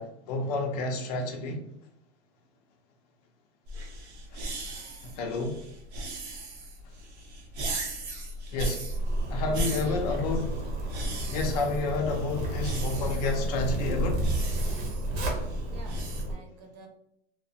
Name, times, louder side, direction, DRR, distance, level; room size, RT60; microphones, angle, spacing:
voice 1, 0.0-1.6 4.3-4.4 5.0-5.6 8.5-8.9 9.3-10.5 11.3-14.2, left 3 dB, 40° left, 3 dB, 0.5 m, -30 dB
sound 1, 3.7-16.2, right 1 dB, 90° right, 0.8 m, -37 dB
Zipper (clothing), 8.8-16.3, right 1 dB, 70° right, 0.9 m, -31 dB
voice 2, 9.8-10.7 15.7-16.9, right 3 dB, 40° right, 3 dB, 0.6 m, -49 dB
2.8 x 2.0 x 2.7 m, 0.76 s
supercardioid pair, 160°, 33 cm